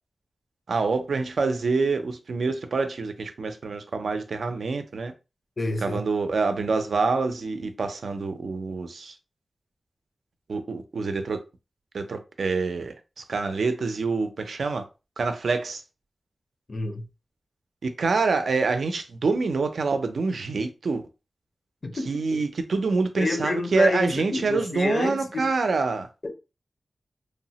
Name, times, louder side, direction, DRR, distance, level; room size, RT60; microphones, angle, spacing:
voice 1, 0.7-5.1 5.8-9.1 10.5-11.4 11.9-14.9 15.2-15.8 17.8-21.1 22.1-26.1, right 4 dB, 80° right, 0.4 m, -26 dB
voice 2, 5.6-6.0 16.7-17.1 21.8-22.4 23.2-25.5 26.2-26.3, left 2 dB, 45° left, 0.5 m, -28 dB
3.0 x 2.0 x 2.8 m
wide cardioid pair, 120°, 0 cm